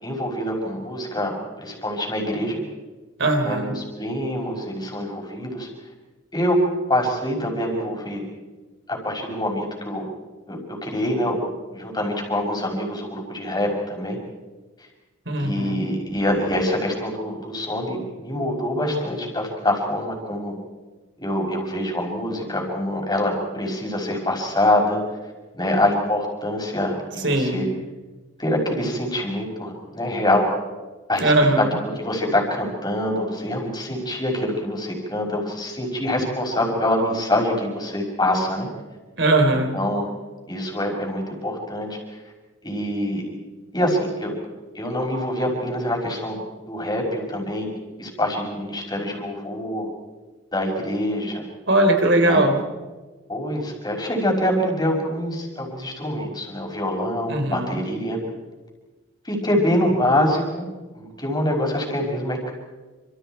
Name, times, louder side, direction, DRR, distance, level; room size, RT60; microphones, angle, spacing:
voice 1, 0.0-2.6 3.4-5.7 6.3-6.6 6.9-8.2 8.9-10.0 10.5-14.2 15.4-20.5 21.2-25.0 25.5-27.7 28.4-30.5 31.1-38.7 39.7-40.1 40.5-42.2 42.6-43.2 43.7-44.3 44.7-46.4 46.7-47.7 48.0-49.9 50.5-51.4 52.2-52.4 53.3-58.2 59.2-60.7 61.0-62.5, left 1 dB, 20° left, 1 dB, 5.7 m, -25 dB
voice 2, 3.2-3.7 15.3-15.8 27.2-27.6 31.2-31.7 39.2-39.8 51.7-52.5 57.3-57.8, right 1 dB, 65° right, 4 dB, 4.1 m, -19 dB
28.5 x 27.0 x 4.6 m, 1.2 s
head